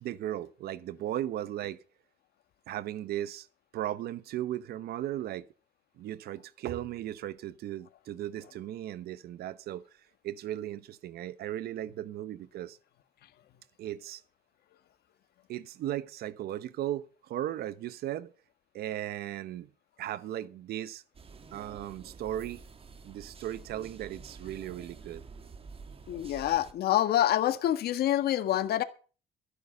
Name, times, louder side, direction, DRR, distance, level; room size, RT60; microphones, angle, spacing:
voice 1, 0.0-1.8 2.7-3.5 3.7-5.5 6.0-9.8 10.2-12.8 13.8-14.2 15.5-18.3 18.7-19.7 20.0-21.0 21.5-22.6 23.0-25.2, right 12 dB, 70° right, 0.9 m, -36 dB
sound 1, 21.1-26.7, right 4 dB, 35° right, 1.9 m, -49 dB
voice 2, 26.1-28.8, left 12 dB, 70° left, 1.7 m, -26 dB
14.0 x 9.9 x 5.2 m
cardioid pair, 110°, 17 cm